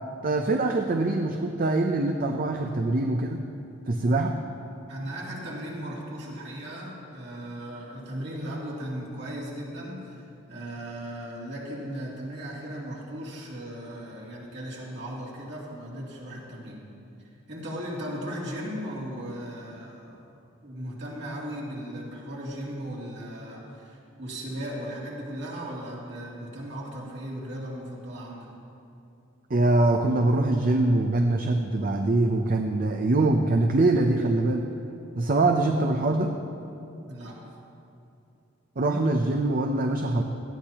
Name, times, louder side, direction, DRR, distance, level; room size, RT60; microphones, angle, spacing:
voice 1, 0.2-3.4 3.9-4.3 29.5-34.7 35.2-36.3 38.8-40.2, right 2 dB, 45° right, 4 dB, 0.6 m, -23 dB
voice 2, 4.9-16.8 17.2-20.3 20.6-28.5 37.1-37.5, equal, 60° right, -4 dB, 2.8 m, -37 dB
18.0 x 13.5 x 2.9 m, 2.7 s
head